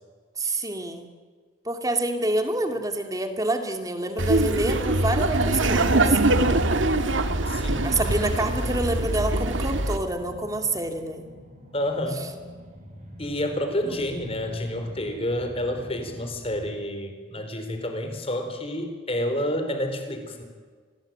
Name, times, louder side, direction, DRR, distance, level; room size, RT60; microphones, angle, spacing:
voice 1, 0.4-1.1 1.6-6.2 7.8-11.3 13.8-13.9, right 2 dB, 20° right, 6 dB, 2.6 m, -27 dB
Laughter, 4.2-10.0, right 2 dB, 80° right, 2.1 m, -23 dB
sound 1, 4.8-16.7, equal, 40° right, 7.0 m, -45 dB
voice 2, 7.5-8.0 11.7-12.3 13.2-20.4, left 1 dB, 30° left, 6 dB, 4.5 m, -29 dB
27.5 x 21.0 x 9.1 m, 1.5 s
head